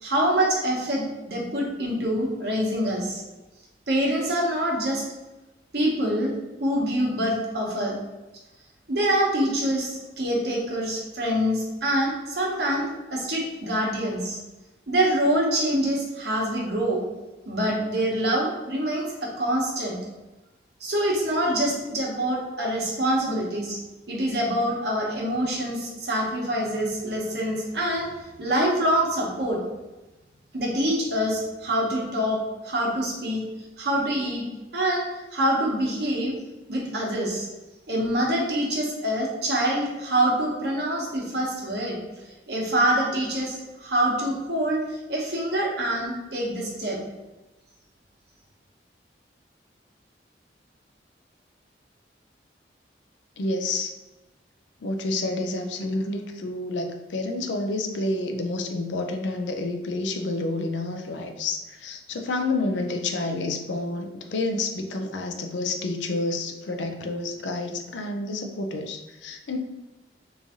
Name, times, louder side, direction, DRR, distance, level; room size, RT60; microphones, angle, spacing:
voice 1, 0.0-3.2 3.9-5.0 5.7-6.3 6.6-8.0 8.9-14.4 14.9-17.0 17.5-20.0 20.8-23.8 24.1-28.1 28.4-29.6 30.5-33.4 33.8-34.4 34.7-35.1 35.3-36.4 36.7-37.5 37.9-42.0 42.5-47.0, right 1 dB, 60° right, -2 dB, 1.0 m, -25 dB
voice 2, 53.4-53.9 54.8-69.6, left 2 dB, 85° left, 5 dB, 0.5 m, -29 dB
3.1 x 2.6 x 3.6 m, 1.1 s
head